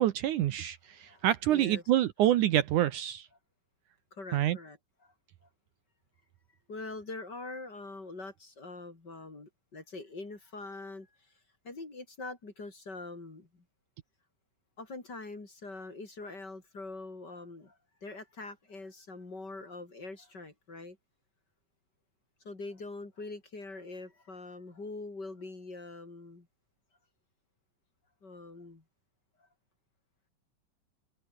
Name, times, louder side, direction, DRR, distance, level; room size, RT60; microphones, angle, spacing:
voice 1, 0.0-3.3 4.3-4.6, right 13 dB, 70° right, 2.2 m, -27 dB
voice 2, 0.9-1.8 4.1-5.1 5.4-5.5 6.7-11.3 11.6-13.6 14.8-21.0 22.4-26.5 28.2-28.8 29.4-29.5, left 3 dB, 30° left, 4.2 m, -44 dB
omnidirectional pair, 4.0 m